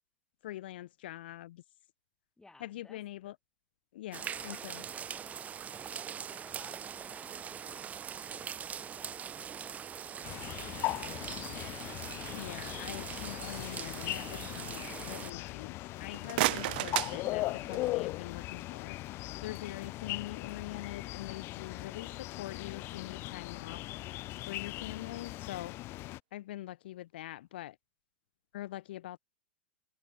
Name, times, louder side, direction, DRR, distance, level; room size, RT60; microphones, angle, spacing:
voice 1, 0.4-1.6 2.6-3.4 3.9-4.9 12.3-23.8 24.4-25.8 26.3-27.8 28.5-29.2, left 14 dB, 60° left, 2.2 m, -44 dB
voice 2, 2.4-3.0 4.2-6.0 6.3-7.9 8.3-11.3, left 3 dB, 10° left, 7.5 m, -60 dB
sound 1, 4.1-15.3, right 8 dB, 25° right, 0.9 m, -42 dB
sound 2, 10.2-26.2, left 18 dB, 40° left, 1.2 m, -39 dB
sound 3, 16.0-18.1, right 20 dB, 55° right, 0.9 m, -33 dB
figure-of-eight pair, 90°, 6 cm